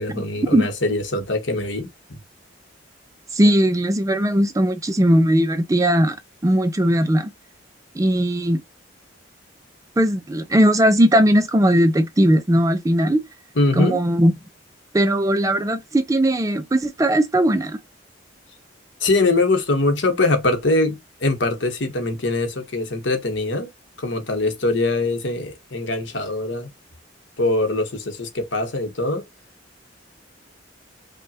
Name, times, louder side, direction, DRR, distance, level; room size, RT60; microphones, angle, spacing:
voice 1, 0.0-2.2 13.6-14.0 19.0-23.7 24.0-26.7 27.4-29.2, left 2 dB, 65° left, 1.1 m, -22 dB
voice 2, 3.3-6.2 6.4-7.3 7.9-8.6 10.0-13.2 13.8-14.3 14.9-17.8, equal, 15° right, 0.4 m, -18 dB
5.3 x 2.2 x 2.7 m
head